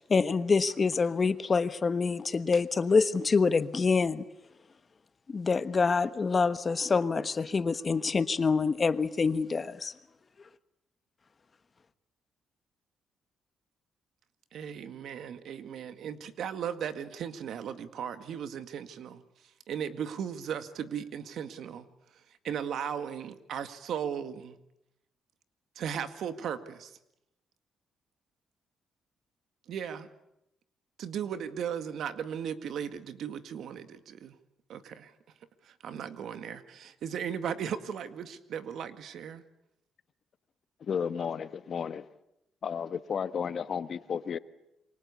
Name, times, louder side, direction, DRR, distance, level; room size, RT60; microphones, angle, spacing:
voice 1, 0.1-4.2 5.3-9.9, left 4 dB, 35° left, 1.3 m, -26 dB
voice 2, 14.5-19.2 19.7-21.9 22.4-24.6 25.8-27.0 29.7-30.1 31.0-34.3 34.7-35.1 35.6-39.4, right 8 dB, 70° right, 2.0 m, -36 dB
voice 3, 40.8-42.1 42.6-44.4, left 7 dB, 50° left, 1.2 m, -33 dB
27.5 x 24.0 x 8.5 m
cardioid pair, 90°, 0 cm